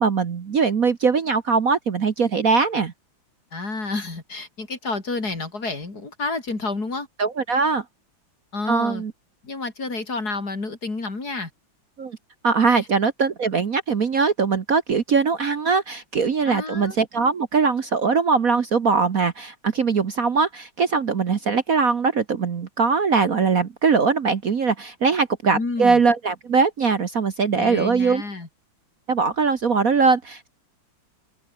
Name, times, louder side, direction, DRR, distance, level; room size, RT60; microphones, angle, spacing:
voice 1, 0.0-2.9 7.2-7.8 8.7-9.1 12.0-12.2 12.4-28.2 29.1-30.5, right 5 dB, 45° right, 1.6 m, -21 dB
voice 2, 3.5-7.1 8.5-9.0 9.4-11.5 12.7-12.9 16.4-17.0 25.5-26.0 27.6-28.5, left 3 dB, 50° left, 4.6 m, -30 dB
omnidirectional pair, 2.2 m